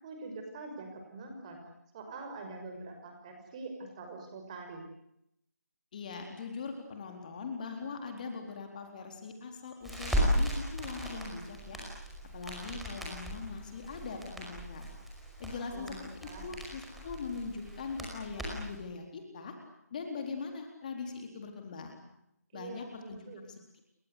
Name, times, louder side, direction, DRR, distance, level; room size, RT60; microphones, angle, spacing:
voice 1, 0.0-1.6 1.9-4.8 15.7-16.4 22.5-23.4, right 3 dB, 20° right, 4 dB, 6.1 m, -44 dB
voice 2, 5.9-11.8 12.3-14.9 15.4-19.5 19.9-22.0 22.5-23.8, left 5 dB, 30° left, 4 dB, 4.2 m, -41 dB
Crackle, 9.8-18.8, equal, ahead, 5.3 m, -36 dB
30.0 x 24.0 x 8.4 m, 0.79 s
figure-of-eight pair, 160°, 9 cm